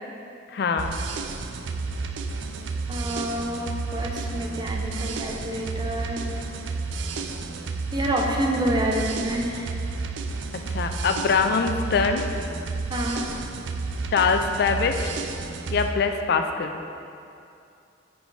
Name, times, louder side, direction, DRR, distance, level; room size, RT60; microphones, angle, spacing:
voice 1, 0.5-1.0 10.7-12.2 14.1-15.1 15.7-16.8, left 5 dB, 60° left, 6 dB, 0.4 m, -23 dB
sound 1, 0.8-15.9, right 3 dB, 80° right, 0.4 m, -31 dB
voice 2, 2.9-6.2 7.9-9.8 12.9-13.2, right 1 dB, 25° right, 0 dB, 0.7 m, -28 dB
6.2 x 5.1 x 4.9 m, 2.5 s
head